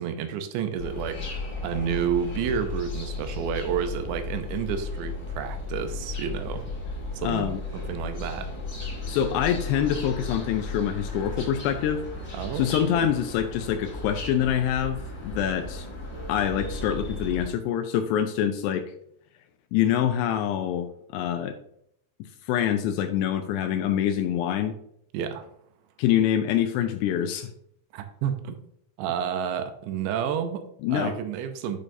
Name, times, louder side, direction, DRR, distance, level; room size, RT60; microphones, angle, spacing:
voice 1, 0.0-6.7 7.1-8.5 12.3-12.7 12.9-13.1 25.1-25.5 27.9-28.6 29.0-30.6 30.9-31.8, right 8 dB, 80° right, 8 dB, 2.9 m, -30 dB
sound 1, 0.8-17.5, left 2 dB, 35° left, 1.6 m, -35 dB
voice 2, 7.2-7.6 9.1-12.0 12.5-15.9 16.3-18.9 19.7-20.9 21.1-21.6 22.5-24.8 26.0-27.5 30.8-31.2, left 10 dB, 85° left, 8 dB, 2.5 m, -25 dB
8.6 x 6.3 x 2.6 m, 0.72 s
omnidirectional pair, 5.2 m